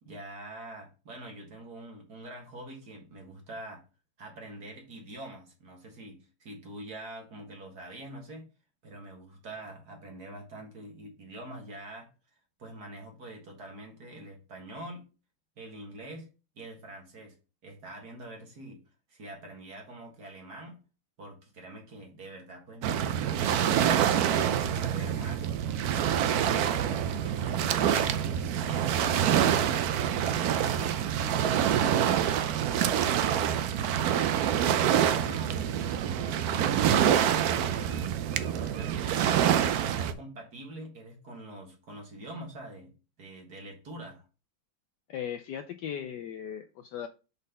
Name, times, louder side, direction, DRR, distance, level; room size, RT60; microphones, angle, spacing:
voice 1, 0.0-3.8 4.2-8.5 8.8-12.1 12.6-15.1 15.6-16.3 16.6-17.3 17.6-18.8 19.1-20.8 21.2-24.1 24.4-25.6 25.9-30.0 32.6-34.2 34.7-36.1 36.5-38.1 38.6-39.4 39.8-42.9 43.2-44.2, right 1 dB, 50° right, 2 dB, 2.2 m, -45 dB
Waves surf, 22.8-40.1, right 9 dB, 80° right, 0.8 m, -26 dB
voice 2, 45.1-47.1, left 9 dB, 75° left, 7 dB, 1.0 m, -37 dB
5.3 x 4.1 x 5.3 m, 0.32 s
omnidirectional pair, 2.2 m